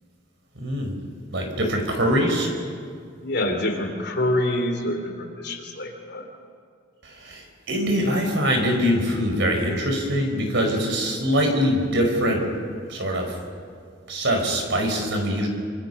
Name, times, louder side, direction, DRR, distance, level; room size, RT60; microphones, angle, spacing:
voice 1, 0.6-1.0 1.3-2.5 7.0-12.4 12.9-13.4 14.1-15.5, equal, 65° right, 3 dB, 4.6 m, -23 dB
voice 2, 3.2-6.3, left 1 dB, 55° left, 4 dB, 3.2 m, -26 dB
27.0 x 26.0 x 5.5 m, 2.2 s
head